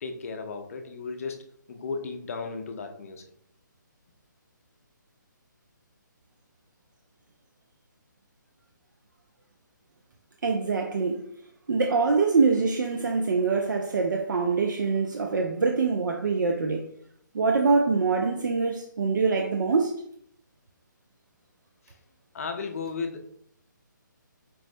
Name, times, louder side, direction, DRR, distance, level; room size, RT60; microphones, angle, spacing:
voice 1, 0.0-3.2 21.9-22.0 22.3-23.2, left 4 dB, 45° left, 0.5 m, -35 dB
voice 2, 10.4-11.3 11.7-16.9 17.3-20.0, right 4 dB, 65° right, 0.4 m, -24 dB
4.6 x 2.1 x 2.5 m
figure-of-eight pair, 150°, 11 cm